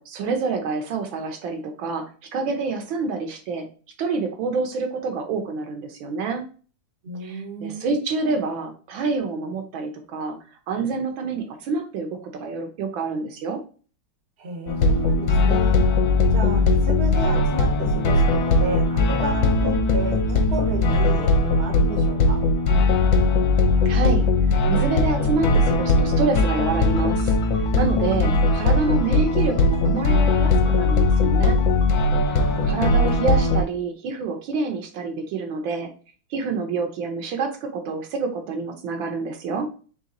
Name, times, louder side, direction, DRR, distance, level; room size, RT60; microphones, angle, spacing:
voice 1, 0.0-2.0 2.3-3.7 4.0-6.4 7.2-10.4 10.7-13.6 19.6-20.0 23.8-24.2 24.7-27.4 27.7-31.6 32.3-32.4 32.6-35.9 36.3-39.7, right 4 dB, 75° right, 4 dB, 1.5 m, -27 dB
voice 2, 7.0-7.9 14.4-15.9 16.3-22.4 27.9-28.7 32.3-32.8, right 3 dB, 45° right, 3 dB, 0.9 m, -32 dB
sound 1, 14.7-33.6, left 2 dB, 70° left, 1.5 m, -19 dB
4.1 x 3.2 x 3.7 m, 0.39 s
omnidirectional pair, 2.3 m